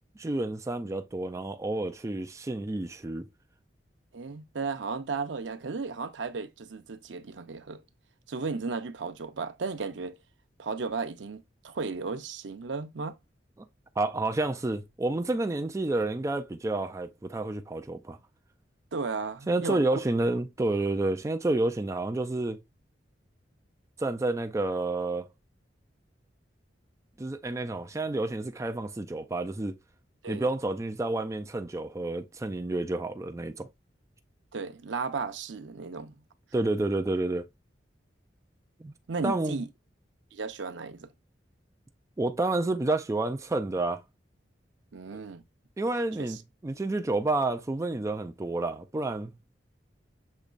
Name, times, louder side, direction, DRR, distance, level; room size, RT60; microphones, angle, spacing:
voice 1, 0.2-3.3 14.0-18.2 19.5-22.6 24.0-25.3 27.2-29.7 30.3-33.7 36.5-37.5 38.8-38.9 39.2-39.6 42.2-44.0 45.8-49.3, right 2 dB, 15° right, 0.4 m, -29 dB
voice 2, 4.1-7.8 8.3-10.1 10.6-13.2 18.9-19.8 30.2-30.4 34.5-36.2 39.1-39.7 40.3-41.1 44.9-45.4 46.2-46.4, right 4 dB, 85° right, 0.6 m, -34 dB
6.5 x 3.0 x 2.4 m
head